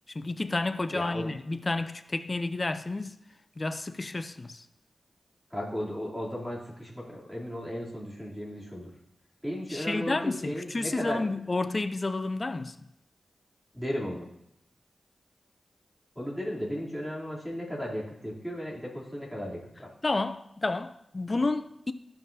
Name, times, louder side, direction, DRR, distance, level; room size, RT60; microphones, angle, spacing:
voice 1, 0.1-3.1 3.6-4.6 9.7-12.8 20.0-21.9, left 2 dB, 40° left, 0.5 m, -30 dB
voice 2, 0.9-1.3 5.5-8.9 9.4-11.2 13.7-14.3 16.1-19.9, equal, ahead, 3.1 m, -35 dB
14.5 x 5.7 x 2.7 m
cardioid pair, 55°, 0 cm